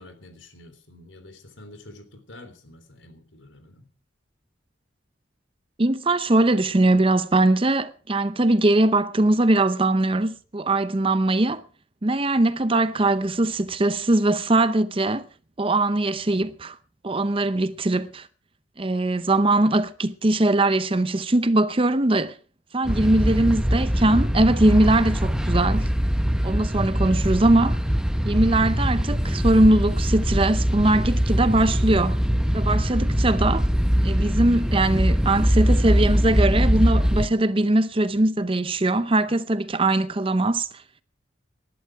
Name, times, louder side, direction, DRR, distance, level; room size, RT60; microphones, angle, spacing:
voice 1, 0.0-3.9, left 1 dB, 75° left, 3.5 m, -47 dB
voice 2, 5.8-11.6 12.0-15.3 15.6-16.8 17.0-18.3 18.8-22.3 22.7-25.9 26.4-27.8 28.2-32.2 32.5-33.7 34.0-40.7, right 2 dB, 30° right, 0.7 m, -21 dB
sound 1, 22.8-37.3, equal, 5° right, 0.9 m, -22 dB
19.0 x 12.0 x 4.7 m
head